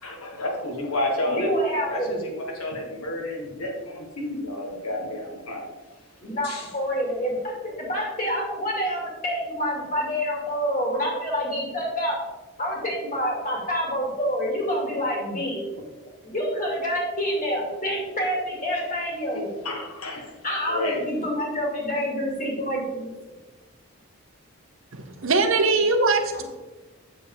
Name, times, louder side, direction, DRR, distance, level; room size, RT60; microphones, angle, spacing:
voice 1, 0.0-1.6 1.9-5.7 6.4-6.7 18.7-18.8 19.6-20.3 20.7-21.0, left 1 dB, 80° left, 0 dB, 1.8 m, -30 dB
voice 2, 1.3-2.2 6.2-12.2 12.6-15.6 16.2-19.5 20.4-23.1 26.3-26.4, equal, 35° left, -2 dB, 2.5 m, -27 dB
voice 3, 24.9-26.4, right 3 dB, 65° right, 6 dB, 0.9 m, -21 dB
8.0 x 7.1 x 3.6 m, 1.2 s
head